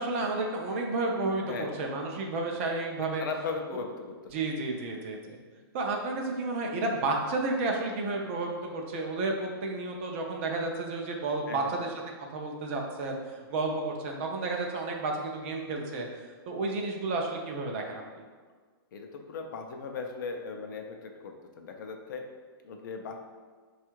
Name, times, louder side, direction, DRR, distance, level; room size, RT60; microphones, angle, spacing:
voice 1, 0.0-3.2 4.3-5.4 5.7-11.9 12.2-16.1 16.5-18.2, right 3 dB, 30° right, 1 dB, 0.5 m, -31 dB
voice 2, 1.5-1.8 3.0-4.3 11.5-11.9 18.9-22.2 22.6-23.3, left 4 dB, 50° left, 3 dB, 0.5 m, -38 dB
4.3 x 2.4 x 4.5 m, 1.5 s
hypercardioid pair, 170°, 13 cm